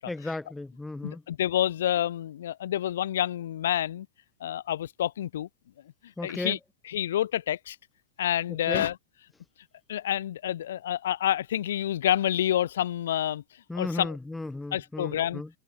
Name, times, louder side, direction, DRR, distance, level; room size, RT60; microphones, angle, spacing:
voice 1, 0.1-1.2 6.2-6.6 8.7-8.8 13.7-15.5, left 2 dB, 5° left, 0.8 m, -35 dB
voice 2, 1.0-4.1 4.4-5.5 6.2-6.6 6.9-7.8 8.2-8.9 9.9-13.4 13.7-14.2 14.7-15.4, left 11 dB, 60° left, 0.6 m, -28 dB
figure-of-eight pair, 90°, 0 cm